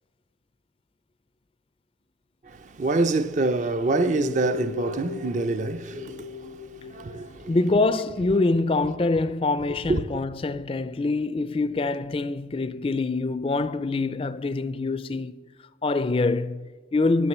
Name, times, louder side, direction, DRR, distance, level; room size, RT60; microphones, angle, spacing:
voice 1, 2.4-7.6 9.9-10.2, right 2 dB, 40° right, 0.5 m, -26 dB
sound 1, 3.9-9.3 9.6-9.8, left 5 dB, 90° left, 1.1 m, -38 dB
voice 2, 7.5-15.4 15.8-17.3, left 3 dB, 30° left, 0.4 m, -25 dB
11.5 x 9.7 x 7.2 m
head